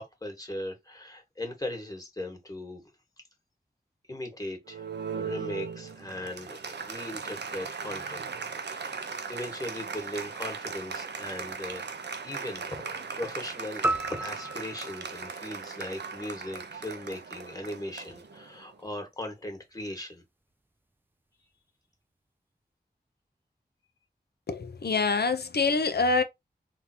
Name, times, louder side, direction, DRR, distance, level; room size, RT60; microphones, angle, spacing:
voice 1, 0.0-2.9 4.1-4.9 5.1-11.9 12.2-20.2, left 1 dB, 20° left, 1.8 m, -39 dB
Applause, 4.7-18.7, right 5 dB, 85° right, 0.7 m, -38 dB
sound 1, 13.8-16.3, right 2 dB, 10° right, 0.3 m, -33 dB
voice 2, 24.5-26.2, left 4 dB, 70° left, 0.7 m, -25 dB
3.8 x 2.8 x 2.9 m
wide cardioid pair, 55°, 17 cm